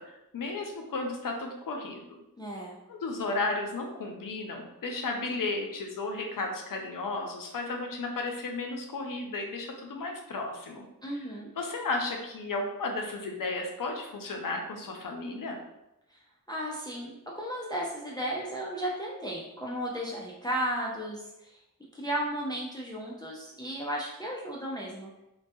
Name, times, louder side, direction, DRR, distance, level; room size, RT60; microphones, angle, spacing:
voice 1, 0.3-2.0 2.9-10.9 11.6-15.6, left 3 dB, 70° left, 2 dB, 0.5 m, -34 dB
voice 2, 2.4-2.8 11.0-11.5 16.1-16.2 16.5-21.6 21.9-25.2, right 1 dB, 10° left, -3 dB, 0.4 m, -34 dB
2.3 x 2.2 x 2.6 m, 0.90 s
cardioid pair, 40°, 34 cm